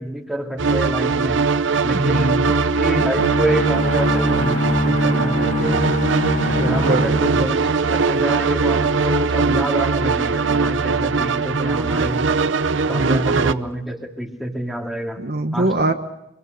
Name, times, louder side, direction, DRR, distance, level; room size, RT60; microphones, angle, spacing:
voice 1, 0.0-1.5 1.8-6.0 6.4-12.4 12.9-15.2 15.5-15.8, right 1 dB, ahead, 1 dB, 2.5 m, -27 dB
sound 1, 0.6-13.5, right 4 dB, 85° right, 0.8 m, -20 dB
voice 2, 1.9-2.7 6.7-7.1 12.9-13.2 15.2-15.9, right 2 dB, 55° right, 6 dB, 1.3 m, -22 dB
sound 2, 3.2-8.1, left 1 dB, 40° left, 0.8 m, -24 dB
25.0 x 24.0 x 6.7 m, 0.84 s
head